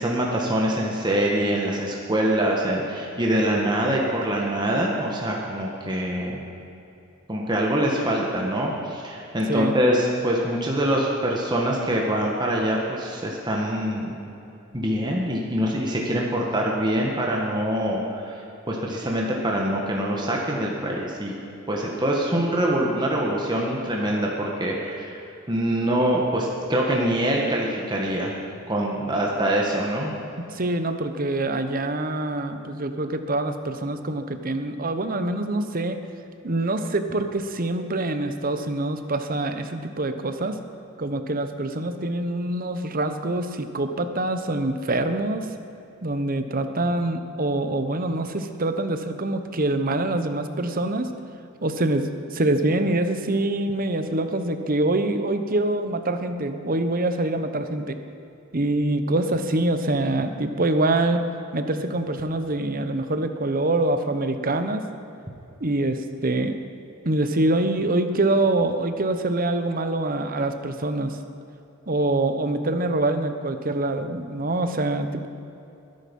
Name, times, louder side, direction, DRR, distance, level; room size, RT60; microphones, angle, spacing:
voice 1, 0.0-6.4 7.3-14.2 14.7-18.4 18.7-21.3 21.7-25.2 25.5-28.3 28.7-30.1, right 1 dB, 20° right, -2 dB, 1.6 m, -24 dB
voice 2, 30.4-36.0 36.4-40.6 41.0-45.5 46.0-51.1 51.6-58.0 58.5-61.2 61.5-64.8 65.6-66.6 67.0-71.2 71.9-75.3, right 2 dB, 45° right, 8 dB, 1.0 m, -25 dB
21.5 x 11.0 x 5.5 m, 2.8 s
head